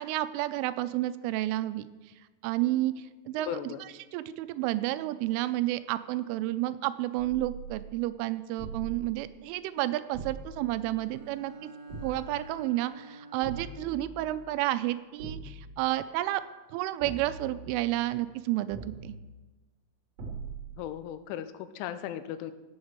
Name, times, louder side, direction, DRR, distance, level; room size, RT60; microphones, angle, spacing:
voice 1, 0.0-1.9 2.4-2.9 3.3-11.7 12.0-16.4 16.7-19.1, right 15 dB, 90° right, 13 dB, 3.1 m, -31 dB
voice 2, 3.5-3.8 20.8-22.5, left 10 dB, 85° left, 12 dB, 3.1 m, -36 dB
sound 1, 7.2-8.0 8.6-9.2 10.1-11.2 11.9-12.5 13.4-14.5 15.2-15.8 17.0-18.1 18.7-19.3 20.2-20.8, right 4 dB, 50° right, 4.2 m, -42 dB
Bowed string instrument, 11.0-14.1, right 2 dB, 70° right, 3.6 m, -49 dB
16.5 x 7.2 x 6.7 m, 1.2 s
omnidirectional pair, 5.6 m